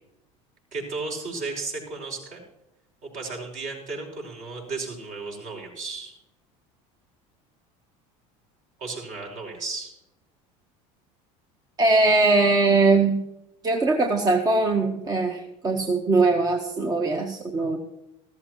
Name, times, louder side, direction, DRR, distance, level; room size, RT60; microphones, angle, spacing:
voice 1, 0.7-2.4 3.0-6.1 8.8-9.9, right 3 dB, 50° right, 0 dB, 5.6 m, -34 dB
voice 2, 11.8-13.2 13.6-17.8, right 3 dB, 25° right, 3 dB, 1.2 m, -21 dB
14.5 x 14.0 x 3.1 m, 0.88 s
supercardioid pair, 115°, 16 cm